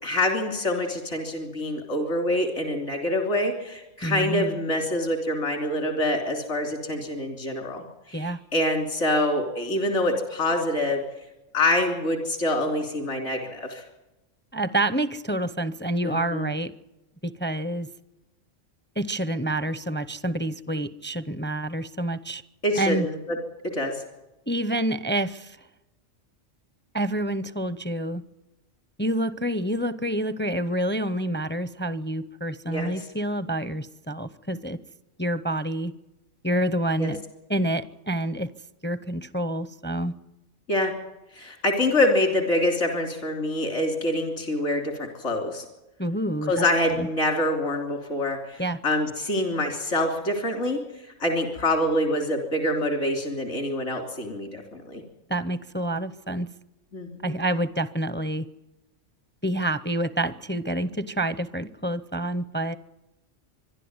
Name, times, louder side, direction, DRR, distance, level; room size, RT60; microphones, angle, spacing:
voice 1, 0.0-11.0 11.5-13.8 16.0-16.5 22.6-23.4 23.6-23.9 32.7-32.9 37.0-37.1 40.7-40.9 41.3-45.6 46.5-50.8 51.2-55.0 56.9-57.4, left 1 dB, 80° left, 4 dB, 3.5 m, -26 dB
voice 2, 4.0-4.5 8.1-8.4 14.5-16.7 17.2-17.9 19.0-22.4 22.8-23.1 24.5-25.6 26.9-28.2 29.0-34.8 35.2-35.9 36.4-37.2 37.5-38.5 38.8-40.1 46.0-46.6 47.0-47.1 48.6-48.8 55.3-56.5 57.2-58.4 59.4-62.8, right 1 dB, 15° left, 15 dB, 0.4 m, -28 dB
25.5 x 11.5 x 9.5 m, 0.96 s
omnidirectional pair, 1.3 m